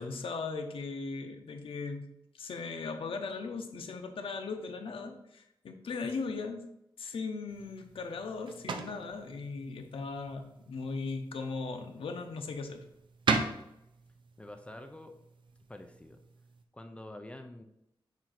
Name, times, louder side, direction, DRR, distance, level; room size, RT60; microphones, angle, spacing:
voice 1, 0.0-6.6 7.0-12.8, left 4 dB, 90° left, 5 dB, 0.8 m, -38 dB
sound 1, 7.5-16.6, right 4 dB, 65° right, 0.6 m, -39 dB
voice 2, 14.4-15.2 15.7-16.2 16.7-17.6, left 1 dB, 15° left, 6 dB, 0.4 m, -47 dB
7.3 x 2.7 x 5.8 m, 0.81 s
wide cardioid pair, 180°, 9 cm